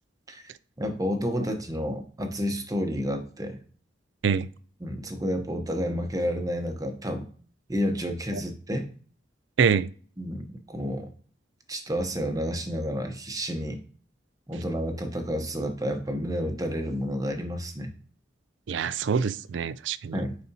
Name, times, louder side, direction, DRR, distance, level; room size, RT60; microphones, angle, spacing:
voice 1, 0.8-3.6 4.8-7.3 7.7-8.9 10.2-11.1 11.7-13.8 14.5-17.9 20.1-20.4, equal, 20° right, 0.9 m, -30 dB
voice 2, 9.6-9.9 18.7-20.2, right 6 dB, 70° right, 0.4 m, -25 dB
9.3 x 4.2 x 2.8 m
head